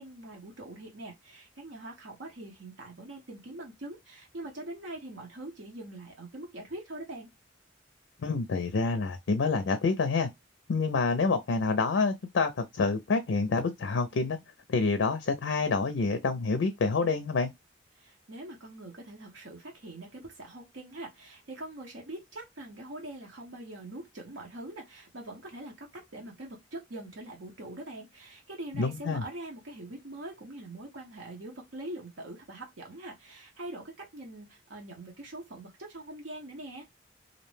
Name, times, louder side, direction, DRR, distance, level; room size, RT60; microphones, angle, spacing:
voice 1, 0.0-7.3 17.9-36.8, right 1 dB, 75° right, 0.8 m, -43 dB
voice 2, 8.2-10.3 10.7-14.4 14.7-17.5 28.7-29.2, left 4 dB, 75° left, 0.4 m, -27 dB
2.5 x 2.1 x 3.1 m
head